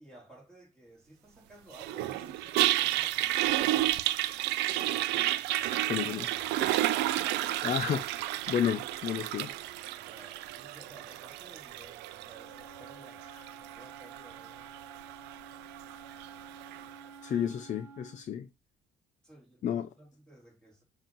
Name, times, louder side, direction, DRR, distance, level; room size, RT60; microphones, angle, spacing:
voice 1, 0.0-4.0 5.6-6.8 9.9-13.3 13.5-14.9 19.2-20.8, right 1 dB, 5° left, 3.4 m, -56 dB
Toilet flush, 1.7-16.9, right 15 dB, 90° right, 0.6 m, -32 dB
voice 2, 5.9-6.3 7.6-8.0 8.5-9.5 17.2-18.5 19.6-19.9, left 9 dB, 45° left, 0.6 m, -31 dB
Wind instrument woodwind instrument, 12.3-18.3, right 4 dB, 15° right, 1.1 m, -51 dB
7.3 x 2.9 x 5.3 m
cardioid pair, 110°, 17 cm